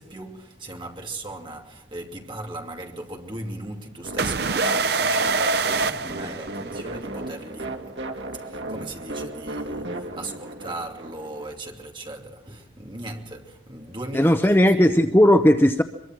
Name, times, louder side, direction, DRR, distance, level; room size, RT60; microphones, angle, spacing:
voice 1, 0.0-7.9 8.3-15.0, right 2 dB, 25° right, 2.8 m, -38 dB
sound 1, 4.0-11.5, right 2 dB, 75° right, 2.4 m, -35 dB
sound 2, 4.2-7.0, right 4 dB, 55° right, 0.8 m, -24 dB
voice 2, 14.1-15.8, equal, 10° left, 0.7 m, -16 dB
23.5 x 23.0 x 6.2 m
head